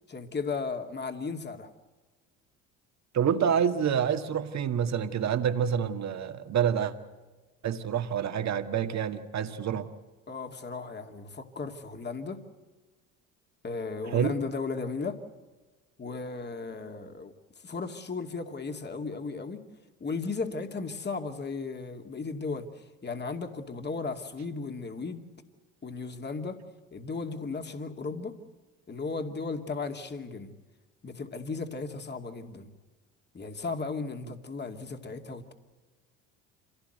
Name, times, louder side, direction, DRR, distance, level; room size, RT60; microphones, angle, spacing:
voice 1, 0.1-1.7 10.3-12.4 13.6-15.2 16.0-17.3 17.6-19.6 20.0-25.2 25.8-26.6 26.9-28.4 28.9-30.5 31.0-32.7 33.3-35.5, left 4 dB, 25° left, 2.5 m, -35 dB
voice 2, 3.1-6.9 7.6-9.9 14.1-14.4, right 8 dB, 45° right, 2.0 m, -27 dB
26.5 x 17.0 x 8.0 m
hypercardioid pair, 65°, 37 cm